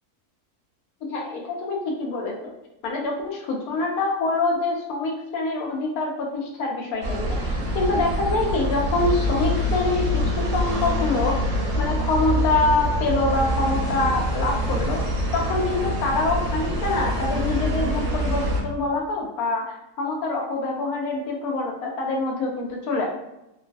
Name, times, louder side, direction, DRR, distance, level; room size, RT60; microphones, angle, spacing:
voice 1, 1.1-2.3 2.8-11.4 11.8-15.0 15.3-23.1, left 3 dB, 75° left, 0 dB, 1.1 m, -25 dB
sound 1, 7.0-18.6, equal, 60° right, 0.9 m, -25 dB
3.0 x 2.3 x 2.4 m, 0.89 s
omnidirectional pair, 1.6 m